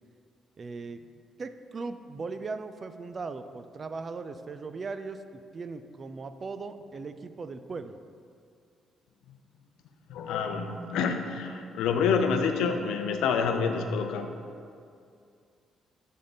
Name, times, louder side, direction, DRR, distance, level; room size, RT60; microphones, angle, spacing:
voice 1, 0.6-1.0 1.4-8.0, right 4 dB, 40° right, 10 dB, 0.3 m, -38 dB
voice 2, 10.1-14.3, left 5 dB, 85° left, 6 dB, 0.4 m, -27 dB
7.7 x 3.6 x 4.0 m, 2.3 s
cardioid pair, 90°, 0 cm